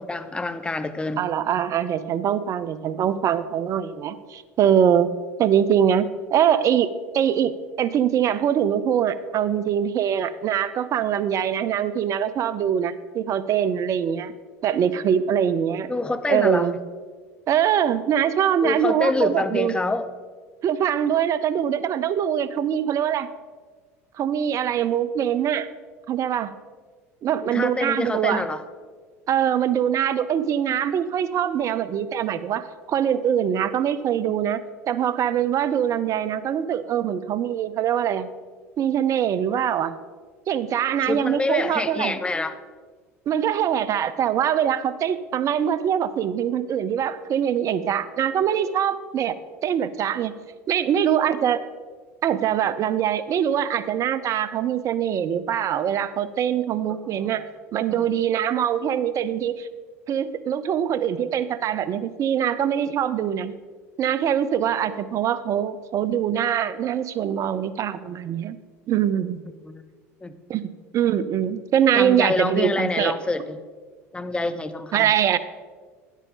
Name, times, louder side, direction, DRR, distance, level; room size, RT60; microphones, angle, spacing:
voice 1, 0.0-1.2 15.9-16.7 18.6-20.1 27.4-28.6 41.0-42.6 57.9-58.0 69.6-69.9 70.2-70.3 71.9-73.6 74.1-75.1, left 2 dB, 15° left, 11 dB, 0.7 m, -26 dB
voice 2, 1.2-5.1 5.4-7.5 7.8-14.3 14.6-15.9 16.3-16.7 17.5-19.8 20.6-23.3 24.2-25.7 26.1-26.5 27.2-28.4 29.3-34.6 34.9-38.3 38.8-39.9 40.5-42.2 43.3-49.4 49.6-50.3 50.7-51.6 52.2-57.4 57.7-59.7 60.1-63.5 64.0-68.6 68.9-69.4 70.5-70.6 70.9-73.2 74.9-75.4, right 9 dB, 45° right, 15 dB, 0.6 m, -23 dB
10.0 x 8.2 x 3.8 m, 1.5 s
hypercardioid pair, 75°, 8 cm